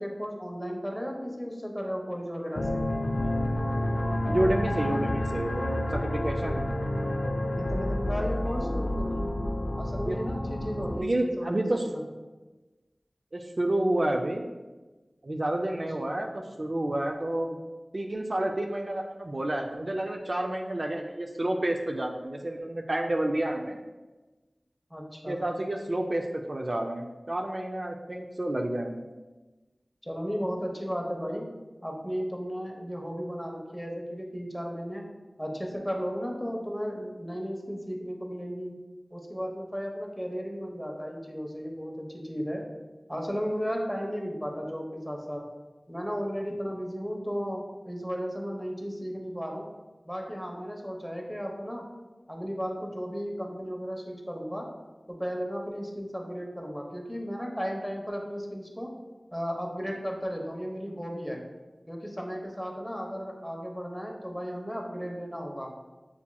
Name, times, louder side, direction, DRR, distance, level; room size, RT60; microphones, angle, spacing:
voice 1, 0.0-2.8 7.6-9.4 9.8-12.0 15.7-15.8 24.9-25.4 30.0-31.4 31.8-35.0 35.4-38.7 39.1-42.6 43.1-45.4 45.9-49.6 50.0-51.8 52.3-54.7 55.1-58.9 59.3-61.4 61.9-65.7, equal, 5° left, 0 dB, 0.8 m, -34 dB
sound 1, 2.5-11.0, left 1 dB, 75° left, 0.3 m, -29 dB
voice 2, 4.3-6.7 10.0-10.2 11.0-11.9 13.3-14.4 15.2-17.6 17.9-23.8 25.3-29.1, right 1 dB, 55° right, 2 dB, 0.3 m, -29 dB
7.1 x 2.8 x 2.2 m, 1.2 s
wide cardioid pair, 50°, 0 cm